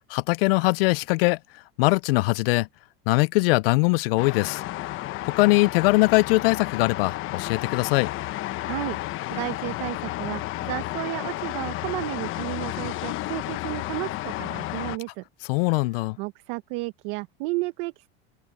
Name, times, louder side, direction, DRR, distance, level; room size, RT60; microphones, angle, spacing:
voice 1, 0.1-2.7 3.1-4.6 5.3-8.1 15.5-16.2, left 24 dB, 70° left, 0.4 m, -22 dB
sound 1, 4.2-15.0, left 16 dB, 40° left, 1.1 m, -32 dB
voice 2, 8.6-9.0 9.3-15.2 16.2-18.1, right 23 dB, 60° right, 1.1 m, -32 dB
open air
supercardioid pair, 130°, 30 cm